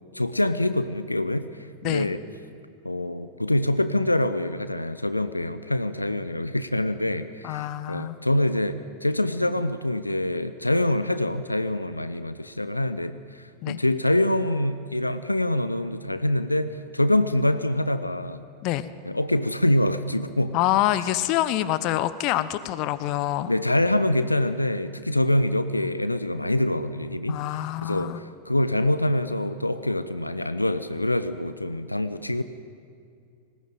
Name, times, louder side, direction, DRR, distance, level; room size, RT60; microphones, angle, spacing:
voice 1, 0.1-1.5 1.8-2.2 2.8-18.4 19.1-20.6 23.5-27.4 27.8-32.4, left 1 dB, 85° left, 12 dB, 0.7 m, -25 dB
voice 2, 1.8-2.1 7.4-8.2 13.6-13.8 18.6-18.9 20.5-23.5 27.3-28.2, left 14 dB, 40° left, 14 dB, 0.9 m, -26 dB
19.5 x 17.5 x 9.1 m, 2.3 s
figure-of-eight pair, 90°, 0 cm